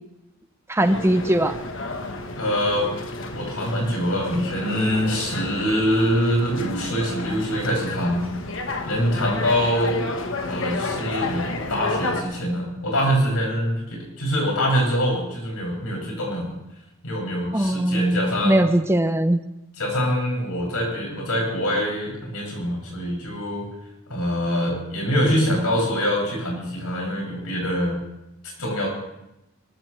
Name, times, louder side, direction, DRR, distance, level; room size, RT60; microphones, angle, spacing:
voice 1, 0.7-1.5 17.5-19.4, right 1 dB, 10° right, 9 dB, 0.6 m, -20 dB
sound 1, 0.8-12.2, left 2 dB, 60° left, 1.3 m, -31 dB
voice 2, 2.4-2.9 3.3-8.2 8.8-10.1 10.4-16.5 17.0-18.6 19.8-23.7 24.1-28.0 28.4-28.9, equal, 85° left, -2 dB, 7.3 m, -24 dB
24.5 x 14.0 x 3.4 m, 0.89 s
head